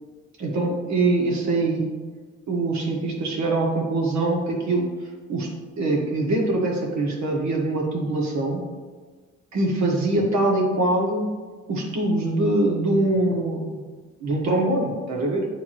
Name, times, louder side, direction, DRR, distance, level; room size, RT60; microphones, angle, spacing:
voice 1, 0.4-1.9 2.5-4.9 5.3-5.5 5.8-8.7 9.5-11.3 11.7-13.8 14.2-15.5, right 2 dB, 65° right, -1 dB, 1.6 m, -23 dB
9.5 x 3.8 x 3.0 m, 1.4 s
cardioid pair, 90°, 30 cm